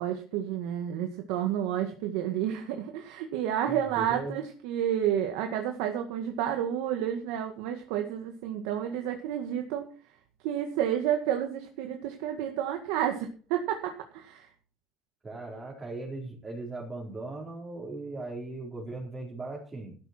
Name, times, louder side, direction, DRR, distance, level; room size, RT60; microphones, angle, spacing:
voice 1, 0.0-9.8 10.4-14.5, right 10 dB, 80° right, 5 dB, 1.8 m, -30 dB
voice 2, 3.7-4.3 15.2-20.0, right 2 dB, 20° right, -3 dB, 4.4 m, -38 dB
13.0 x 11.0 x 4.5 m, 0.39 s
cardioid pair, 135°, 0 cm